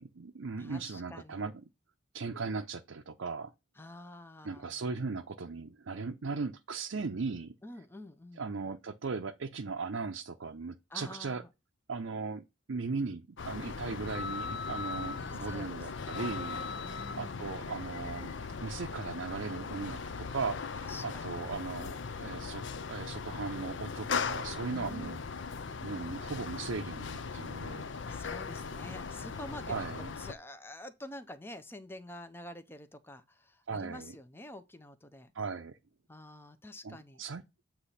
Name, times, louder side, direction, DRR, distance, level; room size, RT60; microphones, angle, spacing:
voice 1, 0.0-1.5 2.1-3.5 4.4-7.5 8.4-11.4 11.9-18.3 18.6-20.8 21.0-22.6 22.9-25.2 25.8-27.9 29.7-30.1 33.7-34.1 35.3-35.8 36.8-37.4, right 4 dB, 70° right, 0.6 m, -38 dB
voice 2, 0.6-1.5 3.8-4.8 7.6-8.5 10.9-11.5 15.4-17.7 20.8-21.4 24.7-25.2 28.1-35.3 36.1-37.2, left 1 dB, 10° left, 0.6 m, -48 dB
sound 1, 13.4-30.3, left 5 dB, 65° left, 0.5 m, -39 dB
8.3 x 3.0 x 5.6 m
head